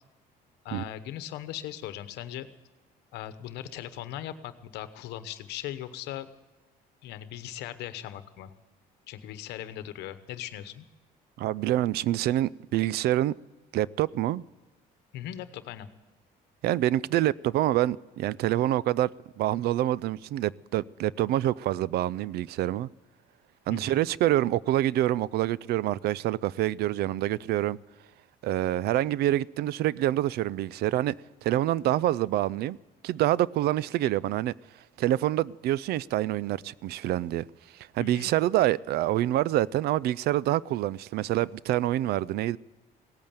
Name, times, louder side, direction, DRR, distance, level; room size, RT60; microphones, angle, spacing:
voice 1, 0.6-2.5 3.1-6.3 7.0-8.5 9.1-10.8 15.1-15.9 23.7-24.0 38.0-38.3, left 12 dB, 85° left, 1.0 m, -39 dB
voice 2, 11.4-13.3 13.7-14.4 16.6-22.9 23.7-27.8 28.4-31.1 31.4-32.8 33.0-34.5 35.0-37.5 37.7-42.6, right 14 dB, 70° right, 0.4 m, -26 dB
17.0 x 8.7 x 9.0 m
cardioid pair, 110°, 17 cm